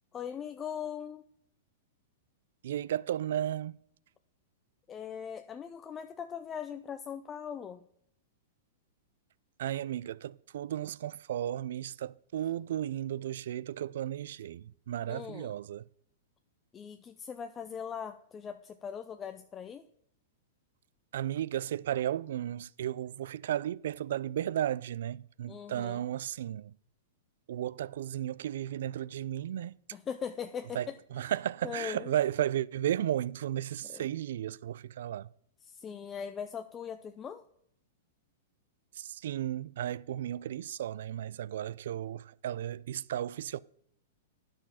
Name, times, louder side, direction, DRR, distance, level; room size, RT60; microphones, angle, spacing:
voice 1, 0.1-1.2 4.9-7.8 15.1-15.6 16.7-19.9 25.5-26.0 29.9-31.0 31.6-32.1 33.8-34.0 35.6-37.4, left 7 dB, 20° left, 0.5 m, -40 dB
voice 2, 2.6-3.8 9.6-15.8 21.1-26.7 27.5-29.8 30.7-35.3 38.9-43.6, right 11 dB, 70° right, 0.3 m, -34 dB
10.0 x 6.4 x 5.6 m
hypercardioid pair, 145°, 0 cm